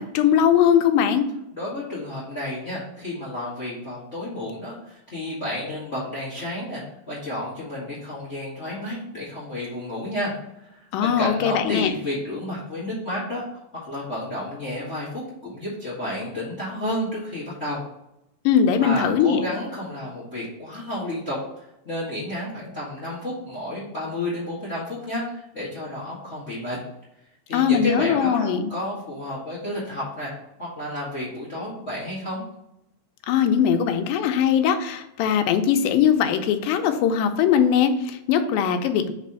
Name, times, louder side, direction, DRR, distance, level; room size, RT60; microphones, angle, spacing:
voice 1, 0.1-1.3 10.9-11.9 18.5-19.4 27.5-28.7 33.3-39.1, left 8 dB, 80° left, 7 dB, 2.3 m, -20 dB
voice 2, 1.5-10.3 10.6-13.4 13.7-17.8 18.8-26.8 27.5-30.3 30.6-32.4, left 1 dB, 40° left, -7 dB, 0.9 m, -31 dB
5.3 x 4.1 x 5.5 m, 0.85 s
omnidirectional pair, 4.2 m